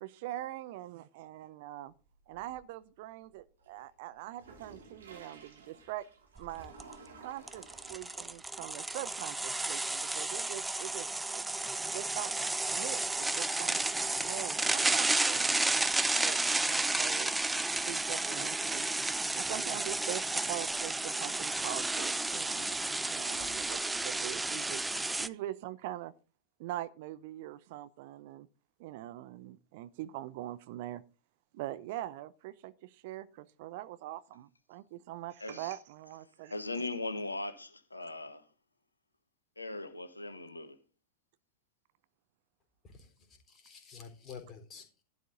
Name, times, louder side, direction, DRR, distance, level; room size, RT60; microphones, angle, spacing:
voice 1, 0.0-1.9 2.3-6.1 6.4-6.7 7.2-12.3 12.7-13.8 14.2-15.5 16.2-18.9 19.3-22.8 23.1-26.1 26.6-28.5 28.8-31.0 31.5-36.5, right 14 dB, 50° right, 0.7 m, -43 dB
sound 1, 1.9-2.8 3.3-15.6, right 4 dB, 65° right, 3.2 m, -57 dB
sound 2, 6.4-6.5 6.8-6.9 7.5-25.3, right 2 dB, 5° right, 0.5 m, -32 dB
voice 2, 35.4-35.7 36.5-38.5 39.6-40.8, left 2 dB, 80° left, 1.3 m, -39 dB
voice 3, 42.8-45.0, left 6 dB, 25° left, 3.8 m, -50 dB
12.0 x 12.0 x 3.9 m
figure-of-eight pair, 90°, 0 cm